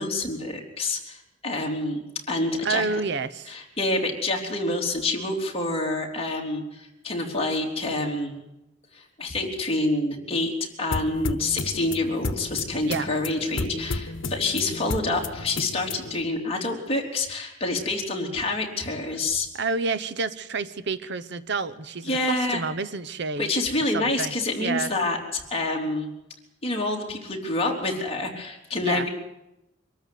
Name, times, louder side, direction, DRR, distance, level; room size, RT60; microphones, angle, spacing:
voice 1, 0.0-2.0 2.3-2.9 3.5-8.3 8.9-10.5 10.8-19.5 22.1-22.6 23.4-26.1 26.6-29.1, left 2 dB, 30° left, 0 dB, 3.5 m, -27 dB
voice 2, 2.6-3.5 12.8-13.1 19.5-23.5 23.9-24.3 24.6-24.9 28.8-29.1, right 4 dB, 65° right, 14 dB, 1.0 m, -29 dB
sound 1, 10.9-16.2, left 3 dB, 90° left, 1.1 m, -33 dB
24.5 x 13.5 x 9.4 m, 0.90 s
head